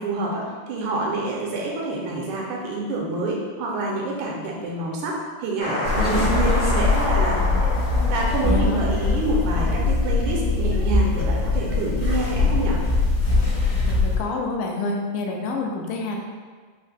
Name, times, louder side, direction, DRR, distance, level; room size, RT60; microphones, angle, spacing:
voice 1, 0.0-7.4 8.1-12.8, right 2 dB, 80° right, -2 dB, 1.9 m, -27 dB
sound 1, 5.6-9.9, left 1 dB, 75° left, 2.5 m, -29 dB
sound 2, 5.8-14.2, left 3 dB, 45° left, 1.2 m, -22 dB
voice 2, 8.4-8.8 13.9-16.2, left 3 dB, 90° left, 1 dB, 2.2 m, -27 dB
5.4 x 2.1 x 3.3 m, 1.5 s
omnidirectional pair, 3.7 m